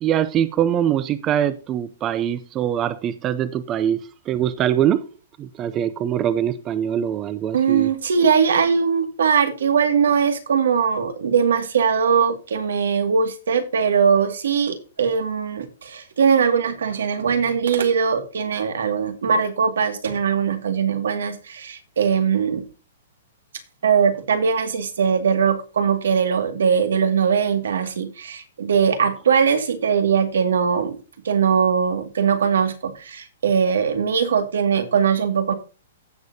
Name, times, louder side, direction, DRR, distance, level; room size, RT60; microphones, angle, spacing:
voice 1, 0.0-5.1 5.4-7.9, right 10 dB, 15° right, 0.5 m, -23 dB
voice 2, 7.5-22.6 23.8-31.0 31.2-35.5, right 6 dB, 90° right, 2.2 m, -20 dB
16.0 x 6.7 x 2.8 m
hypercardioid pair, 175°, 0 cm